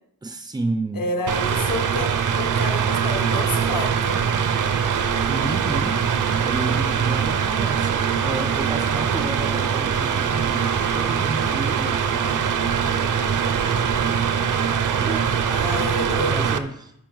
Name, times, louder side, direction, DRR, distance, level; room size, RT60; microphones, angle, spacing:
voice 1, 0.2-1.1 5.3-6.1 6.4-12.6 15.0-15.2 16.1-16.9, right 2 dB, 15° right, 7 dB, 0.3 m, -31 dB
voice 2, 0.9-2.1 2.4-4.2 13.7-14.3 15.5-16.4, left 1 dB, 85° left, 4 dB, 1.1 m, -30 dB
Mechanical fan, 1.3-16.6, right 7 dB, 65° right, 0.6 m, -22 dB
8.9 x 5.3 x 3.9 m, 0.76 s
wide cardioid pair, 175°, 33 cm